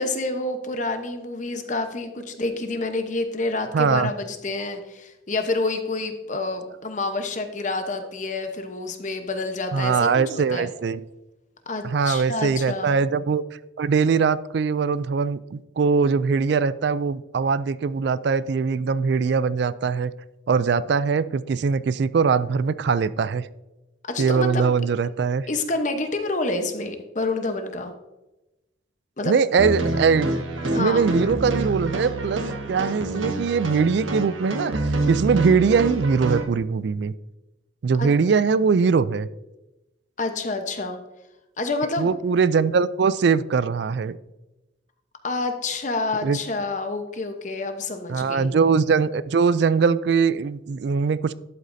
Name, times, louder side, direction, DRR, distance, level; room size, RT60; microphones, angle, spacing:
voice 1, 0.0-10.7 11.7-13.0 24.1-24.8 25.5-27.9 29.2-29.4 30.7-31.0 38.0-38.1 40.2-41.0 41.6-42.1 45.2-48.6, left 2 dB, 40° left, 6 dB, 1.0 m, -28 dB
voice 2, 3.7-4.1 9.7-11.0 11.8-13.4 13.8-20.1 20.5-23.5 24.2-25.5 29.2-30.3 30.8-32.4 32.7-37.1 37.8-39.3 42.0-44.2 46.2-46.4 48.1-51.3, right 5 dB, 60° right, 17 dB, 0.3 m, -21 dB
sound 1, 29.6-36.4, right 2 dB, 85° right, 1.4 m, -27 dB
11.5 x 8.1 x 2.7 m, 0.99 s
head